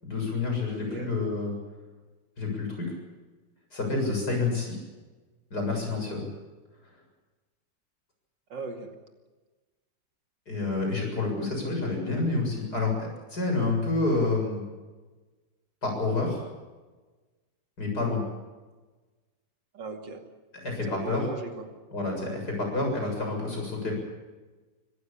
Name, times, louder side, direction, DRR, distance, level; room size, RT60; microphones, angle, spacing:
voice 1, 0.0-1.5 2.4-3.0 3.7-4.8 5.5-6.3 10.5-14.6 15.8-16.4 17.8-18.2 20.6-21.3 21.9-23.9, left 3 dB, 60° left, 2 dB, 7.9 m, -28 dB
voice 2, 0.7-1.1 8.5-9.0 19.7-20.2 20.9-21.7, right 3 dB, 80° right, 4 dB, 3.2 m, -39 dB
25.0 x 16.0 x 8.7 m, 1.3 s
omnidirectional pair, 2.0 m